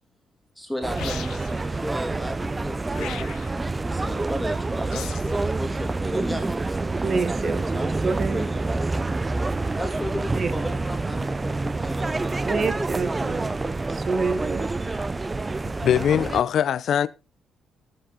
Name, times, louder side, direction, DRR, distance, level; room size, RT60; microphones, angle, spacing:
voice 1, 0.6-6.9 7.3-9.0 9.8-12.7, equal, ahead, 3.0 m, -35 dB
sound 1, 0.8-16.4, right 3 dB, 20° right, 0.5 m, -27 dB
sound 2, 1.0-1.6 2.9-3.6 4.9-5.4, left 11 dB, 85° left, 1.1 m, -37 dB
voice 2, 7.0-8.4 10.4-10.5 12.4-13.6 13.9-14.7, right 4 dB, 45° right, 1.1 m, -27 dB
voice 3, 15.8-17.1, left 9 dB, 65° left, 0.6 m, -21 dB
18.0 x 6.5 x 4.0 m
cardioid pair, 90°, 0 cm